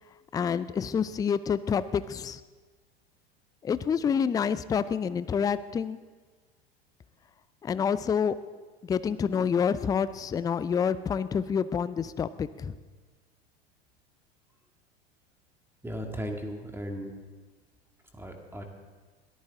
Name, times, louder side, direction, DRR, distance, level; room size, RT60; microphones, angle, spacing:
voice 1, 0.3-2.4 3.6-6.0 7.6-8.4 8.8-12.7, left 7 dB, 10° left, 15 dB, 0.4 m, -28 dB
voice 2, 15.8-17.1 18.1-18.6, equal, 5° right, 3 dB, 2.3 m, -36 dB
21.5 x 14.5 x 3.7 m, 1.4 s
figure-of-eight pair, 85°, 33 cm